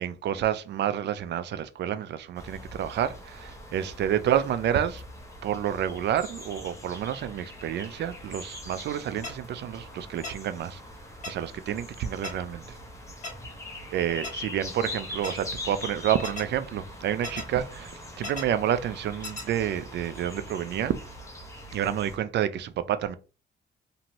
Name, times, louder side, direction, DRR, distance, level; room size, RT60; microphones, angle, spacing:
voice 1, 0.0-5.0 5.4-10.8 11.3-12.6 13.9-20.9 21.7-23.1, right 10 dB, 60° right, 0.4 m, -29 dB
sound 1, 2.3-22.2, left 1 dB, 15° left, 1.0 m, -42 dB
sound 2, 9.2-9.3 10.2-10.3 11.2-11.3 12.2-12.3 13.2-13.3 14.2-14.3 15.2-15.3 16.2-16.4 17.2-17.4 18.2-18.4 19.2-19.4, left 3 dB, 40° left, 1.2 m, -35 dB
2.7 x 2.6 x 2.9 m
cardioid pair, 90°, 20 cm